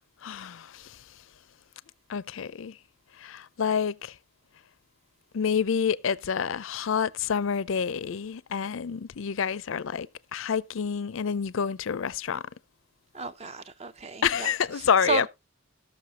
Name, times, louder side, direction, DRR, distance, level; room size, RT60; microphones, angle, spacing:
voice 1, 0.2-1.0 2.1-2.8 3.2-4.2 5.3-12.4 14.2-15.3, left 7 dB, 65° left, 0.4 m, -28 dB
voice 2, 13.1-14.5 14.8-15.3, right 4 dB, 30° right, 0.5 m, -32 dB
18.0 x 6.2 x 2.8 m
head